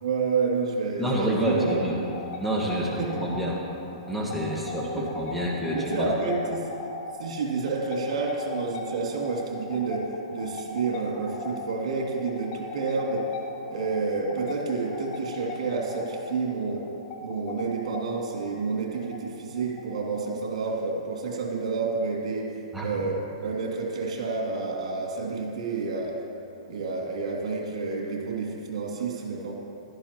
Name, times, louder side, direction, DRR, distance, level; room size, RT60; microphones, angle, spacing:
voice 1, 0.0-1.8 3.0-3.2 4.9-5.1 5.7-6.7 7.2-13.3 13.7-16.9 17.2-22.6 22.8-26.2 26.7-29.5, right 4 dB, 75° right, -1 dB, 2.6 m, -29 dB
voice 2, 1.0-2.0 2.4-3.6 4.1-6.3 22.7-22.9, equal, ahead, -4 dB, 1.6 m, -28 dB
sound 1, 1.2-20.5, left 3 dB, 45° left, 1.2 m, -39 dB
15.5 x 12.5 x 3.0 m, 2.8 s
hypercardioid pair, 135°, 4 cm